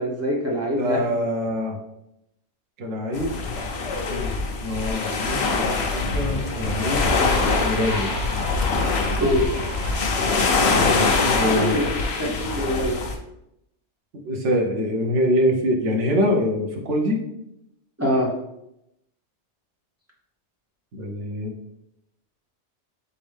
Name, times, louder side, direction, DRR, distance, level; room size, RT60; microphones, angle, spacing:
voice 1, 0.0-1.0 9.2-9.5 11.3-13.0 18.0-18.3, equal, 15° right, -4 dB, 0.9 m, -24 dB
voice 2, 0.8-1.8 2.8-3.3 4.1-4.3 4.6-7.0 7.6-8.1 10.7-11.8 14.2-17.2 20.9-21.5, left 1 dB, 80° right, 1 dB, 1.2 m, -24 dB
sound 1, 3.1-13.2, left 3 dB, 65° left, 0.9 m, -23 dB
sound 2, 4.8-10.1, right 2 dB, 45° right, 0.7 m, -37 dB
4.1 x 3.6 x 3.4 m, 0.83 s
omnidirectional pair, 1.2 m